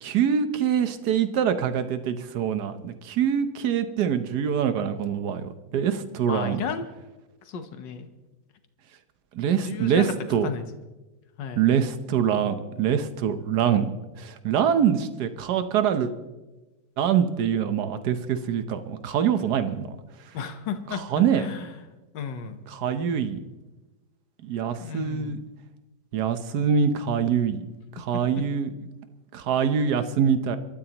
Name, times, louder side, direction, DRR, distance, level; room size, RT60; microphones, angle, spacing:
voice 1, 0.0-6.6 9.3-10.5 11.6-13.9 14.2-16.1 17.0-19.9 20.9-21.5 22.7-23.4 24.4-25.4 26.1-27.7 28.0-28.7 29.3-30.6, right 8 dB, 65° right, 10 dB, 1.4 m, -24 dB
voice 2, 6.3-6.8 7.5-8.1 9.6-10.1 10.4-10.6 11.4-11.7 20.3-21.8 22.1-22.7 24.8-25.4, left 7 dB, 70° left, 8 dB, 1.8 m, -33 dB
27.0 x 13.0 x 3.0 m, 1.1 s
omnidirectional pair, 2.0 m